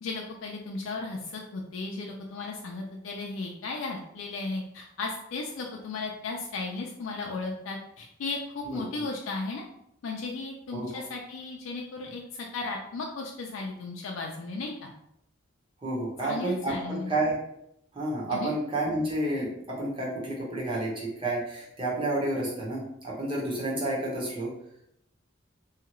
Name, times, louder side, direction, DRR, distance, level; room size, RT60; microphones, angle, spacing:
voice 1, 0.0-9.6 10.0-14.9 16.2-17.1 18.3-18.5, left 3 dB, 90° left, 0 dB, 0.4 m, -35 dB
voice 2, 15.8-17.4 17.9-24.5, right 1 dB, 25° right, -5 dB, 0.9 m, -30 dB
2.7 x 2.4 x 2.9 m, 0.77 s
head